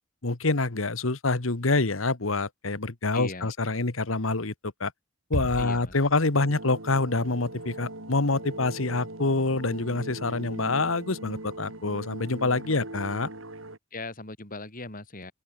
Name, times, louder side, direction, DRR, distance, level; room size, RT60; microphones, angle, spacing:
voice 1, 0.2-4.9 5.3-13.3, left 3 dB, 80° left, 1.6 m, -26 dB
voice 2, 3.1-3.5 5.6-5.9 6.4-6.5 13.9-15.3, left 2 dB, 45° left, 7.3 m, -39 dB
Bass drum, 5.3-6.7, right 1 dB, 40° right, 2.2 m, -35 dB
sound 1, 6.3-13.8, right 1 dB, 80° right, 7.0 m, -40 dB
head